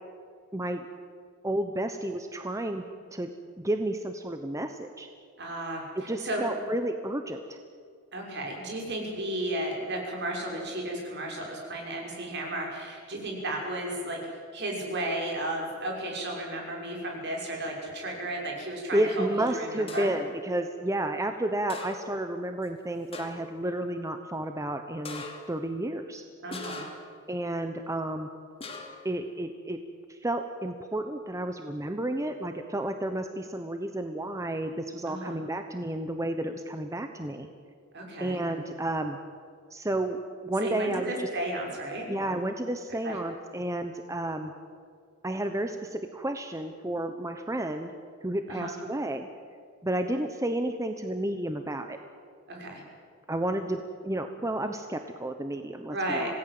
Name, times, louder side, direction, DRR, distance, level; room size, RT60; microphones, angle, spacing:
voice 1, 0.5-0.9 1.4-2.8 3.1-3.3 3.6-5.1 6.0-7.6 18.9-26.2 27.3-28.3 29.0-29.8 30.1-37.5 38.2-39.2 39.7-41.3 42.1-44.5 45.2-47.9 48.2-49.3 49.8-52.0 53.3-56.4, right 1 dB, 15° right, 6 dB, 1.0 m, -31 dB
voice 2, 5.4-5.8 6.2-6.4 8.1-14.2 14.5-19.2 19.5-20.1 26.4-26.9 35.1-35.4 37.9-38.4 40.6-42.1 43.0-43.2 48.5-48.7 52.5-52.8 55.9-56.4, right 1 dB, 55° right, 0 dB, 6.1 m, -33 dB
sound 1, 19.9-20.4 21.7-22.3 22.6-22.7 23.1-23.6 25.0-25.6 26.5-27.2 28.6-29.1, left 3 dB, 30° left, 2.8 m, -41 dB
26.5 x 18.0 x 7.7 m, 2.2 s
head